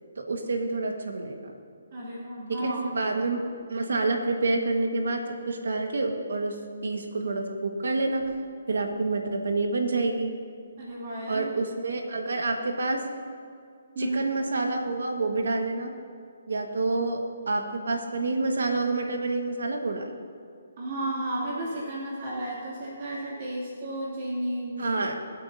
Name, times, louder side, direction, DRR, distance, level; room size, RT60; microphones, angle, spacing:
voice 1, 0.2-1.5 2.6-3.4 3.7-5.2 5.5-6.5 6.8-8.4 8.7-10.3 11.3-13.0 14.0-15.9 16.5-17.2 17.5-20.1 24.8-25.1, right 3 dB, 75° right, 3 dB, 1.7 m, -28 dB
voice 2, 1.9-2.8 10.8-11.5 13.9-14.2 20.8-25.0, right 1 dB, 45° right, -6 dB, 2.9 m, -33 dB
23.0 x 8.5 x 2.8 m, 2.3 s
hypercardioid pair, 155°, 0 cm